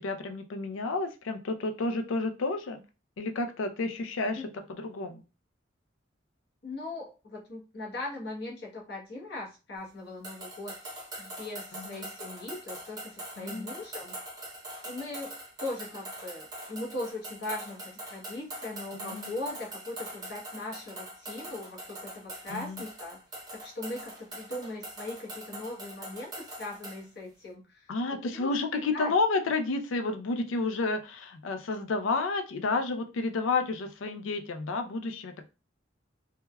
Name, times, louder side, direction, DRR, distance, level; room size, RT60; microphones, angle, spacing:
voice 1, 0.0-2.8 3.2-5.2 11.8-12.0 13.4-13.7 18.9-19.3 22.5-22.8 27.9-35.5, left 3 dB, 90° left, 7 dB, 0.4 m, -31 dB
voice 2, 6.6-10.9 11.2-14.1 14.8-23.2 23.5-29.1, left 2 dB, 55° left, -2 dB, 0.9 m, -40 dB
sound 1, 10.2-27.0, right 1 dB, 20° right, 0.7 m, -43 dB
3.3 x 2.1 x 2.2 m, 0.31 s
head